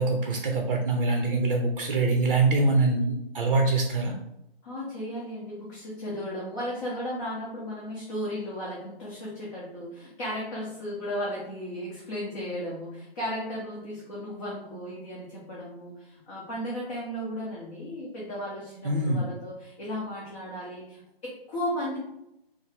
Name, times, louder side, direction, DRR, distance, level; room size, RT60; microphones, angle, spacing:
voice 1, 0.0-4.1 18.8-19.2, right 3 dB, 45° right, 2 dB, 0.7 m, -24 dB
voice 2, 4.6-22.0, equal, 30° left, -6 dB, 1.0 m, -35 dB
4.7 x 2.1 x 3.4 m, 0.85 s
figure-of-eight pair, 145°, 31 cm